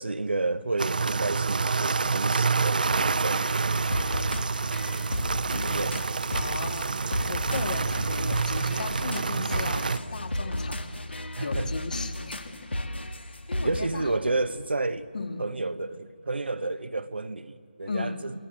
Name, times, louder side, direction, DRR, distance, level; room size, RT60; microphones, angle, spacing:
voice 1, 0.0-3.6 5.5-6.2 11.4-11.7 13.6-15.1 15.4-18.3, right 2 dB, 70° right, 1.1 m, -31 dB
sound 1, 0.8-10.0, right 4 dB, 50° right, 0.7 m, -27 dB
sound 2, 3.3-13.8, left 1 dB, 80° left, 1.9 m, -33 dB
sound 3, 4.5-8.7, right 15 dB, 15° right, 0.6 m, -48 dB
voice 2, 5.5-5.9 6.3-14.2 15.1-15.5 17.9-18.2, left 4 dB, 50° left, 2.6 m, -37 dB
28.0 x 22.5 x 7.4 m
figure-of-eight pair, 160°, 6 cm